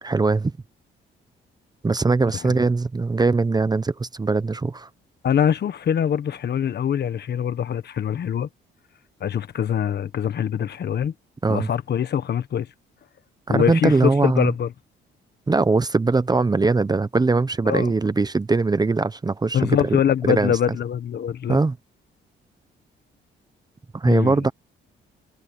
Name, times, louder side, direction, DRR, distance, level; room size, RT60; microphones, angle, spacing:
voice 1, 0.0-0.5 1.8-4.9 11.4-11.7 13.5-14.5 15.5-19.8 20.2-20.5 21.5-21.8 23.9-24.5, right 3 dB, 20° right, 0.8 m, -21 dB
voice 2, 5.2-8.5 9.2-11.1 11.5-12.7 13.5-14.7 17.7-17.9 19.5-21.6 24.1-24.5, left 9 dB, 55° left, 1.4 m, -23 dB
cardioid pair, 90°, 20 cm